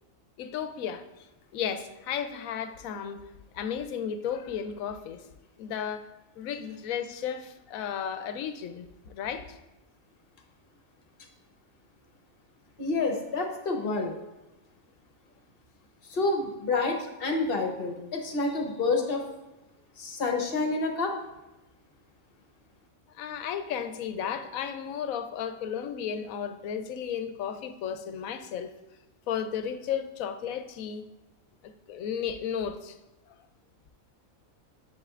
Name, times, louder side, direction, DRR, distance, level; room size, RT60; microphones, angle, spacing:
voice 1, 0.4-1.0 1.5-3.2 3.5-5.2 5.6-6.1 6.4-9.6 23.1-28.7 29.3-31.1 31.6-33.0 33.3-33.4, left 8 dB, 80° left, 9 dB, 1.0 m, -34 dB
voice 2, 12.8-14.1 16.1-19.2 20.0-21.1, left 3 dB, 45° left, 2 dB, 1.1 m, -28 dB
8.2 x 6.9 x 2.4 m, 0.99 s
omnidirectional pair, 1.4 m